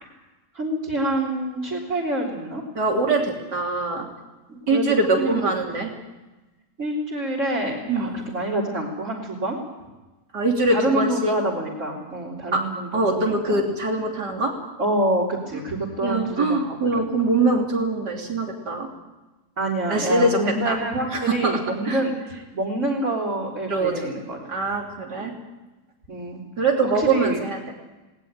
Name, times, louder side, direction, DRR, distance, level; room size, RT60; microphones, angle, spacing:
voice 1, 0.5-2.6 4.5-4.8 5.2-5.8 6.8-9.6 10.7-13.7 14.8-17.3 19.6-22.1 22.5-24.4 25.2-25.4 26.1-26.4 26.8-27.4, right 1 dB, 50° right, -4 dB, 4.0 m, -27 dB
voice 2, 2.8-4.1 4.7-5.9 7.9-8.1 10.3-11.3 12.5-12.6 12.9-14.6 15.5-15.6 16.0-18.9 19.9-20.8 21.1-22.0 23.7-24.1 24.5-25.3 26.6-27.7, right 2 dB, 85° right, 1 dB, 3.8 m, -23 dB
19.5 x 19.0 x 9.0 m, 1.1 s
omnidirectional pair, 1.7 m